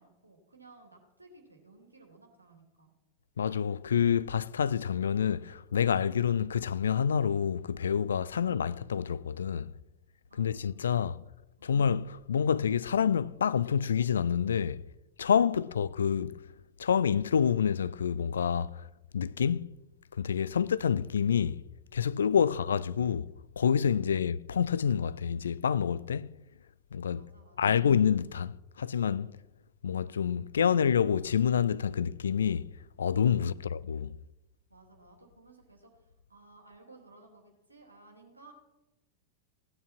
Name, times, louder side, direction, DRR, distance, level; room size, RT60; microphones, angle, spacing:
voice 1, 0.0-2.9 10.3-11.0 11.6-11.8 15.5-15.8 20.4-20.7 24.0-24.3 27.1-27.8 33.3-33.7 34.7-38.5, right 3 dB, 80° right, 2.6 m, -58 dB
voice 2, 3.4-9.7 10.4-11.2 11.6-14.8 15.2-16.4 16.8-18.9 19.1-19.7 20.1-21.6 21.9-23.3 23.6-26.3 26.9-27.2 27.6-29.3 29.8-32.7 33.0-34.1, left 7 dB, 70° left, 0.4 m, -28 dB
16.5 x 9.7 x 6.0 m
figure-of-eight pair, 90°, 0 cm